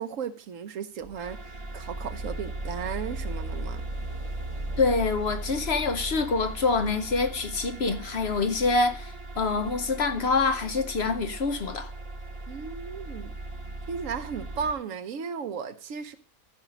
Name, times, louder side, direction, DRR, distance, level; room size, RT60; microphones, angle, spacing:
voice 1, 0.0-3.8 12.5-13.3 13.9-16.2, right 6 dB, 70° right, 1.1 m, -35 dB
sound 1, 1.0-14.7, right 2 dB, 30° right, 0.7 m, -37 dB
voice 2, 4.8-11.9, left 4 dB, 55° left, 0.9 m, -26 dB
14.0 x 5.5 x 5.0 m
omnidirectional pair, 1.5 m